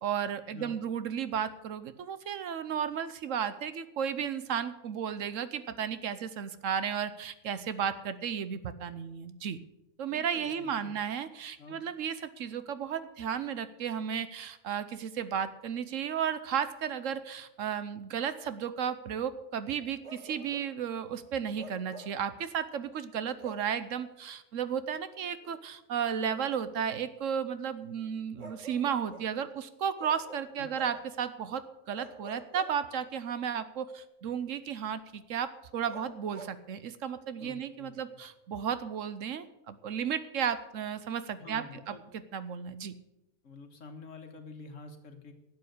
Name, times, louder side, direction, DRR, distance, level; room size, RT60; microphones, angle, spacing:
voice 1, 0.0-9.6 10.0-42.0 42.3-42.9, right 8 dB, 70° right, 13 dB, 1.1 m, -34 dB
voice 2, 10.1-11.0 11.6-11.8 30.6-30.7 37.4-38.2 41.4-42.1 43.4-45.3, left 3 dB, 65° left, 6 dB, 1.8 m, -48 dB
Bark, 20.0-20.8 21.6-22.3 23.4-23.8 25.4-25.6 28.4-29.4 30.0-31.1 31.9-33.2 35.9-36.6, right 3 dB, 30° right, 1.2 m, -48 dB
12.0 x 7.8 x 8.2 m, 0.92 s
omnidirectional pair, 1.4 m